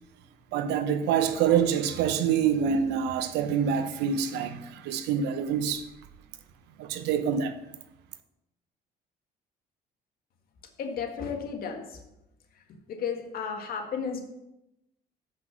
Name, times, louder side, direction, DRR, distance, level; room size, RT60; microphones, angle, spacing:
voice 1, 0.5-5.9 6.8-7.6, right 7 dB, 85° right, 0.8 m, -26 dB
voice 2, 10.8-12.0 12.9-14.2, left 6 dB, 60° left, 1.6 m, -33 dB
7.4 x 5.9 x 6.2 m
cardioid pair, 110°, 17 cm